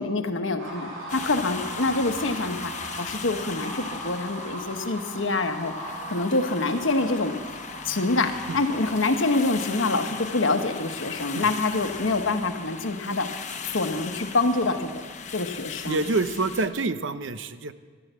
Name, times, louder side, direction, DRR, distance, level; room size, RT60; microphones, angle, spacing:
voice 1, 0.0-2.7 3.0-7.3 7.8-13.3 13.6-14.9 15.3-16.0, left 3 dB, 75° left, 7 dB, 1.1 m, -26 dB
sound 1, 0.6-15.4, right 1 dB, 85° right, 5.5 m, -40 dB
sound 2, 1.1-16.7, left 6 dB, 35° left, 1.0 m, -39 dB
voice 2, 15.9-17.7, right 3 dB, 65° right, 12 dB, 0.6 m, -27 dB
12.0 x 12.0 x 8.0 m, 1.5 s
head